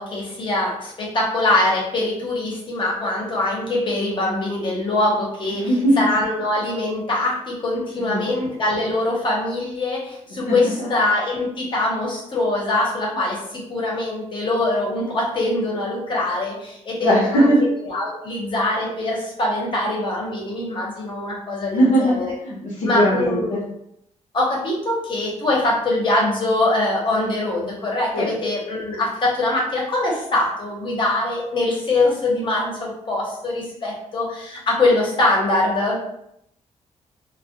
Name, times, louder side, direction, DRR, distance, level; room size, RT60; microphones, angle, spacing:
voice 1, 0.0-5.7 6.0-17.5 17.9-22.3 22.9-23.5 24.3-36.0, left 2 dB, 40° left, -3 dB, 0.8 m, -23 dB
voice 2, 5.5-6.1 8.0-8.3 10.5-10.9 17.0-17.6 21.7-23.6 28.1-28.3, equal, 90° left, -5 dB, 0.8 m, -19 dB
2.2 x 2.1 x 2.8 m, 0.76 s
cardioid pair, 135°, 12 cm